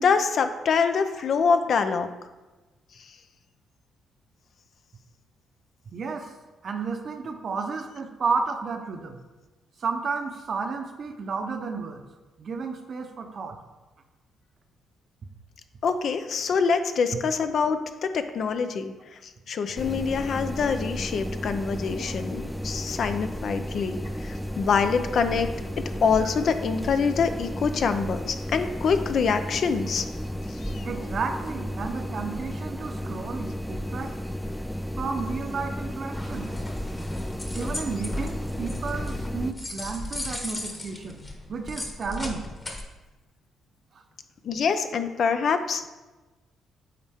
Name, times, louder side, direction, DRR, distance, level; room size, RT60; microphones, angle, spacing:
voice 1, 0.0-2.1 15.8-18.9 19.5-25.5 25.8-30.0 30.6-30.9 44.4-45.9, left 5 dB, 60° left, 9 dB, 0.5 m, -25 dB
voice 2, 5.9-6.3 6.6-9.2 9.8-12.0 12.4-13.6 26.2-26.4 30.8-34.1 35.0-36.5 37.5-41.2 41.5-42.4 43.9-44.0, right 4 dB, 50° right, 6 dB, 0.8 m, -32 dB
sound 1, 19.8-39.5, equal, 5° left, 0.3 m, -33 dB
sound 2, 36.1-42.8, left 1 dB, 25° left, 1.2 m, -36 dB
8.6 x 4.2 x 3.6 m, 1.2 s
cardioid pair, 90°, 0 cm